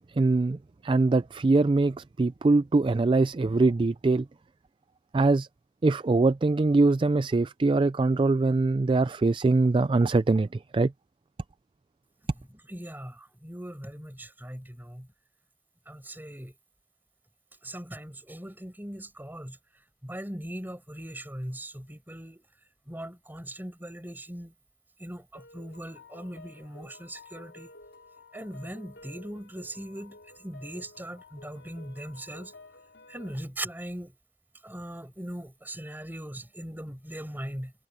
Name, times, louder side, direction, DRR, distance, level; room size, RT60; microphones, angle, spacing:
voice 1, 0.1-4.3 5.1-5.5 5.8-10.9, right 3 dB, 30° right, 0.3 m, -23 dB
voice 2, 12.7-15.1 15.9-16.5 17.6-19.6 20.0-22.5 22.9-24.5 25.0-27.7 28.3-32.5 33.1-34.2 34.6-37.7, right 1 dB, 10° right, 5.1 m, -40 dB
sound 1, 25.3-33.4, left 3 dB, 90° left, 5.4 m, -52 dB
head